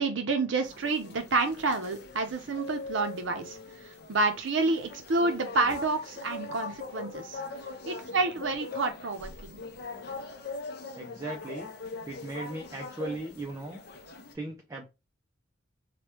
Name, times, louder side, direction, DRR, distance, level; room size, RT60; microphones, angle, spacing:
voice 1, 0.0-3.6 4.1-7.4 7.9-9.6, right 3 dB, 65° right, 0.6 m, -29 dB
sound 1, 0.6-14.3, left 3 dB, 55° left, 0.5 m, -41 dB
voice 2, 11.0-11.7 12.1-13.8 14.3-14.9, right 2 dB, 15° right, 0.3 m, -37 dB
3.3 x 2.2 x 2.9 m
head